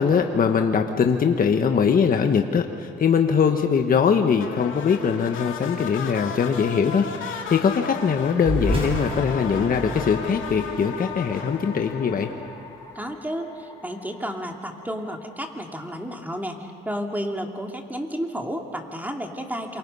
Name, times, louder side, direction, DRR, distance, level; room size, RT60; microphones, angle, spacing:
voice 1, 0.0-12.3, left 6 dB, 45° left, 5 dB, 1.3 m, -21 dB
sound 1, 4.4-12.8, left 7 dB, 80° left, 2.6 m, -35 dB
sound 2, 7.8-19.1, left 2 dB, 20° left, 4.4 m, -45 dB
sound 3, 8.4-13.3, equal, 25° right, 7.1 m, -32 dB
voice 2, 12.9-19.8, equal, 10° right, 2 dB, 2.6 m, -32 dB
27.5 x 24.0 x 5.6 m, 2.4 s
cardioid pair, 90°, 20 cm